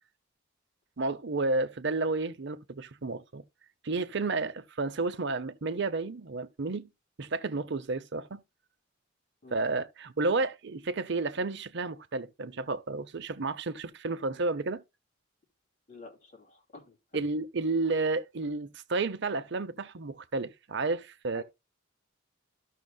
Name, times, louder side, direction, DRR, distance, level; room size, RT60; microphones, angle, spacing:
voice 1, 1.0-3.4 3.8-6.9 7.2-8.4 9.5-14.8 17.1-21.4, right 3 dB, 60° right, 0.7 m, -31 dB
voice 2, 15.9-17.2 21.3-21.4, left 3 dB, 40° left, 2.6 m, -49 dB
13.5 x 6.4 x 2.3 m
head